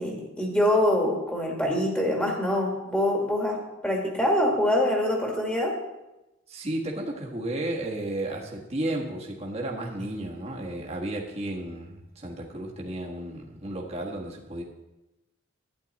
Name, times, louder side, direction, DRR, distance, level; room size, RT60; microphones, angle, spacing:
voice 1, 0.0-5.8, left 1 dB, 5° left, -1 dB, 1.7 m, -25 dB
voice 2, 6.5-14.6, right 1 dB, 30° right, -1 dB, 1.5 m, -33 dB
11.5 x 10.0 x 4.1 m, 0.99 s
head